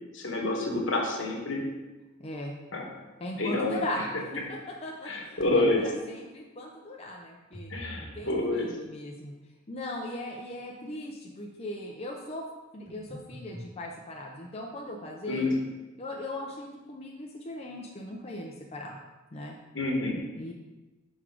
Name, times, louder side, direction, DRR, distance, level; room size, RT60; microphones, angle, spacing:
voice 1, 0.0-1.6 2.7-2.9 3.4-4.0 5.0-5.8 7.7-8.7 15.3-15.6 19.7-20.2, left 2 dB, 70° left, 0 dB, 1.2 m, -28 dB
voice 2, 2.2-2.5 3.2-4.0 4.5-7.7 8.1-9.3 9.7-12.4 12.7-15.5 16.0-19.0 19.3-19.6 20.3-20.5, left 1 dB, 30° left, -1 dB, 0.6 m, -38 dB
sound 1, 7.5-8.4 12.9-13.7, equal, 30° right, 1.7 m, -44 dB
6.1 x 4.0 x 4.6 m, 1.1 s
head